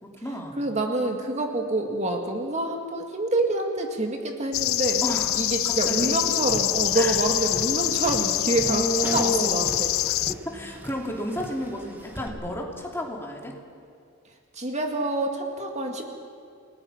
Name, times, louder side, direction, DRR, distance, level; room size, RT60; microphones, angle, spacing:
voice 1, 0.0-0.6 5.0-5.4 5.6-6.1 6.9-7.1 8.6-9.6 10.4-13.5, left 1 dB, 10° left, -1 dB, 2.9 m, -31 dB
voice 2, 0.6-5.0 5.3-8.9 9.1-9.9 14.6-16.1, right 2 dB, 35° right, 3 dB, 2.1 m, -27 dB
sound 1, 4.5-10.3, left 16 dB, 75° left, 0.4 m, -25 dB
Tap, 5.9-12.3, equal, 10° right, 1.8 m, -40 dB
29.0 x 19.0 x 5.8 m, 2.3 s
head